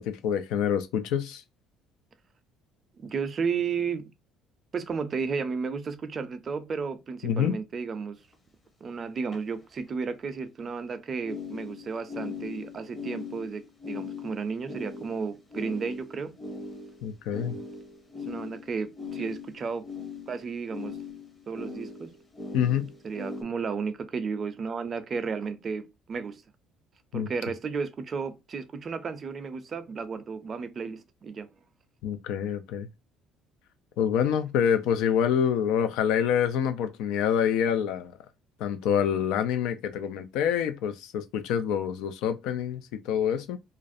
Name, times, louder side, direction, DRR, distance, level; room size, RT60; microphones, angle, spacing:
voice 1, 0.0-1.4 7.2-7.6 17.0-17.6 22.5-22.9 27.1-27.3 32.0-32.9 34.0-38.1 38.6-43.6, left 8 dB, 80° left, 0.3 m, -26 dB
voice 2, 3.0-4.1 4.7-8.2 8.8-16.4 18.3-19.9 20.3-21.0 21.5-22.1 23.0-26.4 27.1-31.5, right 5 dB, 35° right, 0.4 m, -33 dB
sound 1, 8.3-8.4 9.2-9.4 11.2-23.4, left 4 dB, 25° left, 0.7 m, -40 dB
2.4 x 2.0 x 2.5 m
cardioid pair, 110°, 0 cm